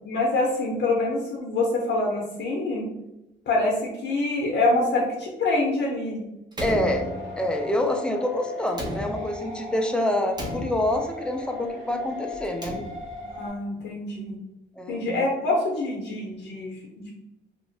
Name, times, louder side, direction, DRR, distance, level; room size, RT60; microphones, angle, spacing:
voice 1, 0.0-2.9 3.5-3.7 4.0-6.2 13.3-14.4 14.9-17.1, left 2 dB, 65° left, -2 dB, 0.7 m, -25 dB
Slam, 6.5-7.6 8.7-9.6 10.3-11.2 12.3-13.3, right 1 dB, 20° right, 0.7 m, -34 dB
voice 2, 6.6-12.8 14.8-15.3, left 1 dB, 5° left, 4 dB, 0.4 m, -27 dB
sound 1, 6.8-13.5, left 3 dB, 80° right, 1.3 m, -38 dB
2.8 x 2.4 x 2.7 m, 0.94 s
cardioid pair, 90°, 20 cm